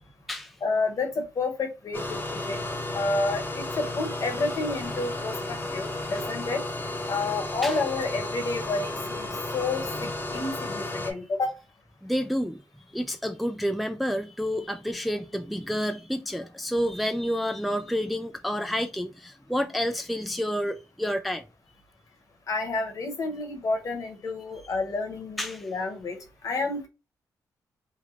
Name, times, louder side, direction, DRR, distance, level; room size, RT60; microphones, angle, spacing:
voice 1, 0.6-2.6 2.9-6.6 7.1-11.6 22.5-26.2 26.4-26.9, left 3 dB, 50° left, 1.1 m, -30 dB
sound 1, 1.9-11.1, left 2 dB, 30° left, 0.9 m, -33 dB
voice 2, 12.0-12.6 12.9-21.4 25.4-25.7, equal, ahead, 0.3 m, -29 dB
3.3 x 2.1 x 3.5 m
cardioid pair, 80°, 7 cm